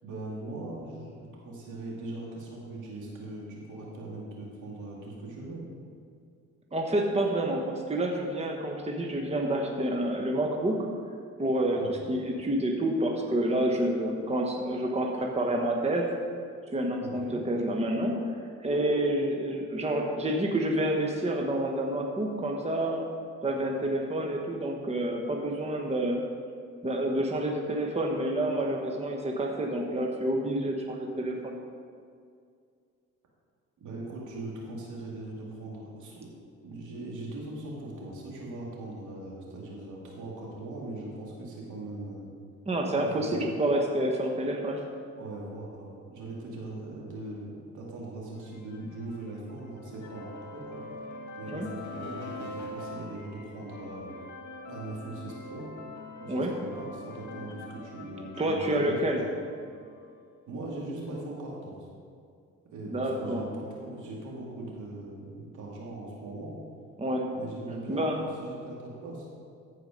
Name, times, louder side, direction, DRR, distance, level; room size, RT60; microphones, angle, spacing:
voice 1, 0.0-5.6 11.8-12.1 17.0-17.4 33.8-36.3 36.6-42.3 42.9-43.4 45.2-50.9 51.4-54.1 54.7-55.7 56.2-59.0 60.5-61.9 62.7-66.5 67.3-69.3, right 2 dB, 75° right, -3 dB, 2.7 m, -40 dB
voice 2, 6.7-10.7 11.4-11.8 12.1-16.1 16.7-18.2 18.6-23.0 23.4-26.2 26.8-31.6 42.7-44.8 51.5-51.7 56.3-56.5 58.4-59.2 62.9-63.4 67.0-67.3 67.9-68.2, right 1 dB, 20° right, 1 dB, 1.2 m, -28 dB
sound 1, 48.5-60.2, left 2 dB, 65° left, 1.4 m, -44 dB
14.5 x 5.0 x 5.2 m, 2.2 s
cardioid pair, 90°, 30 cm